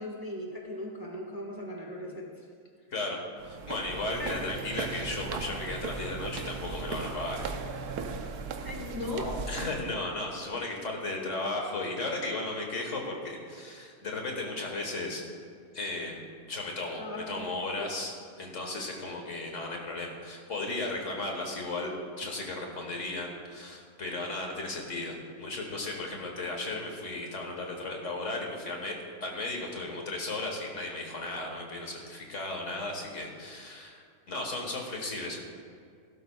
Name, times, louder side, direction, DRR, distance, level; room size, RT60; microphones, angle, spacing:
voice 1, 0.0-2.5 4.2-4.5 8.6-9.4 17.0-17.5 17.8-17.9, left 1 dB, 15° right, -1 dB, 1.3 m, -38 dB
voice 2, 2.9-7.5 9.5-15.2 15.7-16.2 16.5-17.0 17.3-18.1 18.4-21.9 22.2-29.0 29.2-35.4, left 2 dB, 55° left, 1 dB, 1.8 m, -35 dB
sound 1, 3.4-9.9, right 5 dB, 85° right, 1.3 m, -37 dB
16.0 x 12.5 x 2.3 m, 2.2 s
omnidirectional pair, 1.6 m